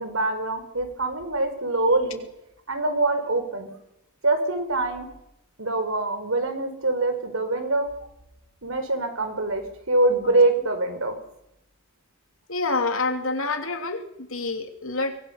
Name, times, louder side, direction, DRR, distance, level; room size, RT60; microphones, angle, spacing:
voice 1, 0.0-2.2 2.7-3.7 4.2-5.1 5.6-7.9 8.6-11.2, right 2 dB, 70° right, 8 dB, 4.6 m, -24 dB
voice 2, 12.5-15.2, left 3 dB, 70° left, 6 dB, 3.0 m, -27 dB
24.0 x 21.5 x 6.7 m, 0.84 s
head